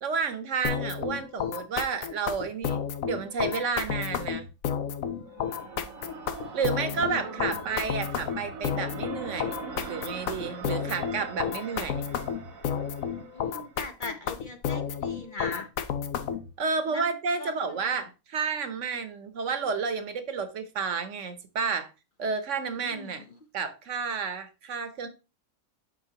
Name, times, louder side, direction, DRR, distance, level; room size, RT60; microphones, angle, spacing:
voice 1, 0.0-4.5 6.5-9.6 9.8-12.1 16.6-21.9 22.2-23.2 23.5-25.1, right 5 dB, 65° right, 1.1 m, -31 dB
sound 1, 0.6-16.5, left 8 dB, 80° left, 1.1 m, -31 dB
sound 2, 5.0-13.8, right 4 dB, 85° right, 1.7 m, -42 dB
voice 2, 6.0-6.9 13.3-15.7 16.9-17.1 17.4-17.5 22.8-23.2, left 2 dB, 50° left, 0.7 m, -40 dB
8.1 x 5.6 x 2.8 m
omnidirectional pair, 1.4 m